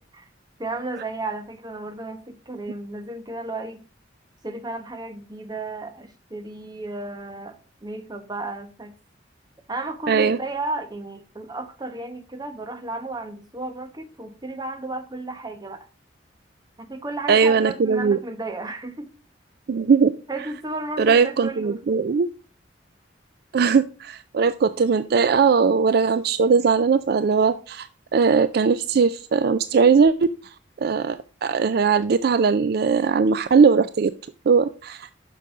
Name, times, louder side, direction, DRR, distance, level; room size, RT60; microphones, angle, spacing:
voice 1, 0.6-3.8 4.4-8.9 9.7-15.9 16.8-19.1 20.3-21.8, right 2 dB, 20° right, 0.9 m, -33 dB
voice 2, 10.1-10.4 17.3-18.2 19.7-20.1 21.0-22.3 23.5-30.3 30.8-34.1 34.5-35.1, right 5 dB, 55° right, 0.4 m, -19 dB
6.9 x 6.2 x 4.9 m
head